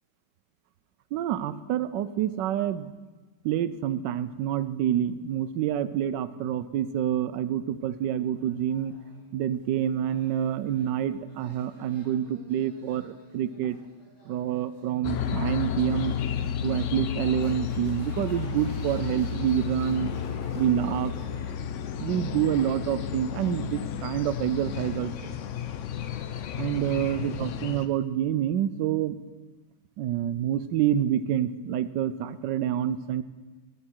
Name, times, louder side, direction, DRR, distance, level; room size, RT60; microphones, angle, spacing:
voice 1, 1.1-2.9 3.4-8.9 9.3-13.8 14.3-16.1 16.6-20.1 20.5-21.1 22.0-25.3 26.6-29.2 30.0-33.2, right 10 dB, 90° right, 14 dB, 1.3 m, -27 dB
sound 1, 7.8-21.5, left 1 dB, 15° left, 2.9 m, -55 dB
sound 2, 15.0-27.9, left 8 dB, 70° left, 0.7 m, -32 dB
13.5 x 10.0 x 4.5 m, 1.3 s
omnidirectional pair, 1.9 m